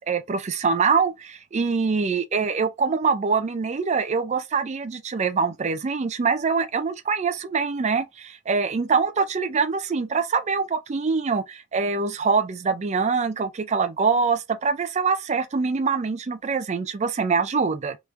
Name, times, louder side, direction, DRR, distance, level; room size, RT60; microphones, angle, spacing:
voice 1, 0.1-18.0, right 5 dB, 35° right, 0.4 m, -24 dB
3.4 x 3.1 x 2.5 m
head